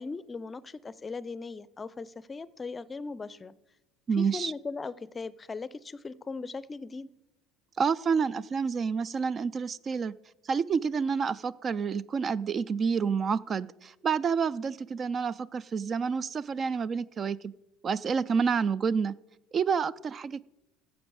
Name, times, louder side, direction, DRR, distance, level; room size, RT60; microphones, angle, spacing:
voice 1, 0.0-3.5 4.2-7.1, left 4 dB, 25° left, 0.5 m, -38 dB
voice 2, 4.1-4.5 7.8-10.1 10.4-17.5 17.8-19.1 19.5-20.4, right 6 dB, 35° right, 0.3 m, -29 dB
14.5 x 7.1 x 4.8 m
hypercardioid pair, 65°, 0 cm